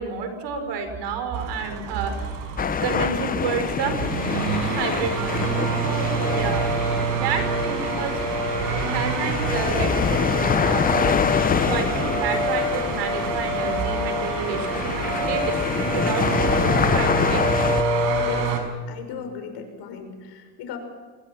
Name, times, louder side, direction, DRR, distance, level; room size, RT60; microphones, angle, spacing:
voice 1, 0.0-2.4 2.8-4.0 4.6-5.4 5.8-6.7 7.1-8.3 8.9-17.4, right 5 dB, 55° right, 7 dB, 5.5 m, -30 dB
sound 1, 1.3-18.6, right 3 dB, 90° right, 6.1 m, -26 dB
sound 2, 2.6-17.8, left 7 dB, 20° left, 0.5 m, -26 dB
voice 2, 5.3-6.4 18.2-18.5 18.9-20.8, left 6 dB, 55° left, 5 dB, 6.1 m, -37 dB
26.5 x 20.5 x 6.0 m, 1.4 s
cardioid pair, 125°, 48 cm